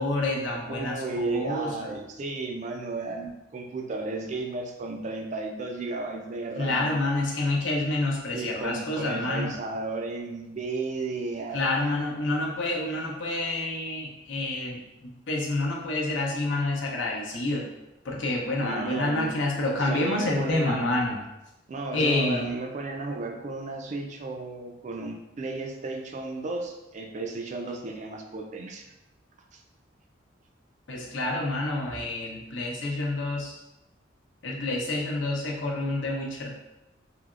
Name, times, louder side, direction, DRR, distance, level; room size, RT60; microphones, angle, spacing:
voice 1, 0.0-2.0 6.6-9.5 11.5-17.7 18.0-21.2 21.9-22.5 30.9-33.5 34.4-36.5, left 2 dB, 70° left, -2 dB, 0.7 m, -28 dB
voice 2, 0.7-6.9 8.3-11.6 18.6-19.4 19.8-20.9 21.7-28.9 29.5-29.6, right 3 dB, 40° right, 3 dB, 0.3 m, -34 dB
3.4 x 2.9 x 2.3 m, 0.96 s
head